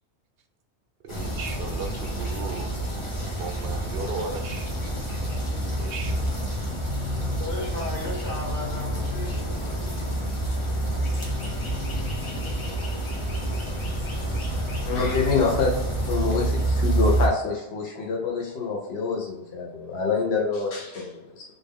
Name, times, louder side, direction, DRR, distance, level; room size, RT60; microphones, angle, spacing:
voice 1, 1.0-2.7 3.4-4.7 5.8-6.6, right 4 dB, 65° right, 5 dB, 0.8 m, -36 dB
sound 1, 1.1-17.3, right 1 dB, 30° left, 0.8 m, -28 dB
voice 2, 7.4-10.2 10.9-11.5, left 1 dB, 50° left, -4 dB, 1.5 m, -36 dB
voice 3, 14.9-15.7 16.1-21.4, left 4 dB, 70° left, -2 dB, 1.0 m, -26 dB
3.6 x 2.5 x 3.6 m, 0.93 s
omnidirectional pair, 1.1 m